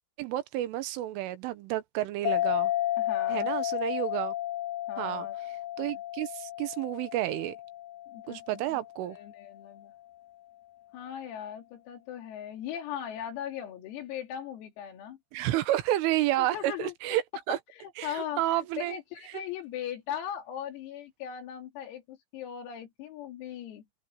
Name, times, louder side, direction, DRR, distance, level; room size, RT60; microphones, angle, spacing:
voice 1, 0.2-2.7 3.3-4.4 5.0-5.3 5.8-7.6 8.3-9.2 15.3-17.6 18.0-19.0 19.3-19.4, right 14 dB, 75° right, 3.6 m, -30 dB
sound 1, 2.2-9.3, left 14 dB, 70° left, 1.8 m, -32 dB
voice 2, 3.0-3.5 4.9-5.4 5.9-6.0 8.1-8.4 8.7-8.8 9.1-9.9 10.9-15.2 16.4-16.9 17.5-23.8, left 9 dB, 90° left, 5.8 m, -39 dB
omnidirectional pair, 5.9 m